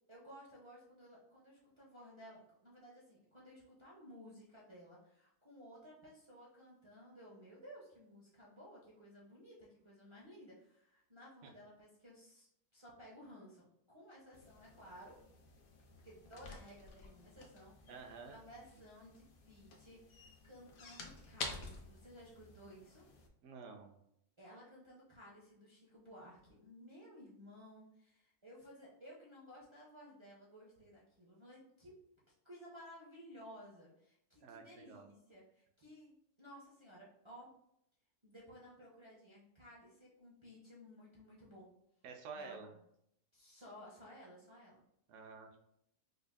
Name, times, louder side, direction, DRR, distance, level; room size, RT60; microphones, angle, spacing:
voice 1, 0.1-15.2 16.0-23.0 24.4-31.9 32.4-37.5 38.2-41.7 42.3-42.6 43.3-44.8, equal, 50° right, -6 dB, 0.3 m, -57 dB
sound 1, 14.3-23.3, left 3 dB, 75° left, 1.0 m, -51 dB
voice 2, 17.9-18.4 23.4-23.9 34.4-35.1 42.0-42.7 45.1-45.6, right 4 dB, 65° right, 4 dB, 0.8 m, -50 dB
5.0 x 2.3 x 2.2 m, 0.76 s
omnidirectional pair, 1.6 m